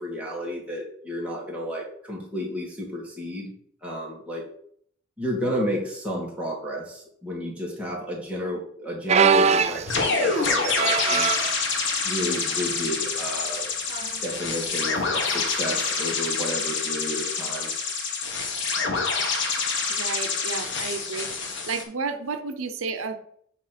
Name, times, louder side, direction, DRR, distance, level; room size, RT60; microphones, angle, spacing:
voice 1, 0.0-3.5 3.8-4.4 5.2-11.5 12.0-13.7 14.2-17.7, equal, 5° right, -4 dB, 1.9 m, -32 dB
sound 1, 9.1-11.6 12.3-12.6 12.9-13.0 13.9-14.2 15.8-15.9, right 6 dB, 35° right, 0.3 m, -23 dB
sound 2, 9.9-21.8, left 4 dB, 65° left, 1.4 m, -27 dB
voice 2, 19.9-21.3 21.7-23.2, right 4 dB, 85° right, 7 dB, 0.7 m, -31 dB
7.5 x 3.2 x 5.9 m, 0.64 s
head